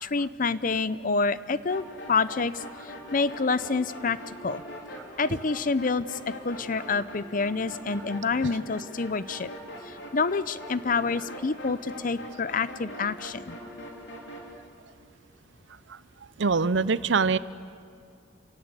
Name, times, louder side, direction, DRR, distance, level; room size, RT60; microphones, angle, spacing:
voice 1, 0.0-2.6 3.1-4.6 5.2-6.2 6.4-9.5 9.9-13.6, left 4 dB, 50° left, 15 dB, 0.7 m, -27 dB
sound 1, 1.7-14.5, equal, 70° left, 4.1 m, -42 dB
voice 2, 16.4-17.4, right 4 dB, 80° right, 17 dB, 0.7 m, -24 dB
28.5 x 17.5 x 8.2 m, 2.3 s
head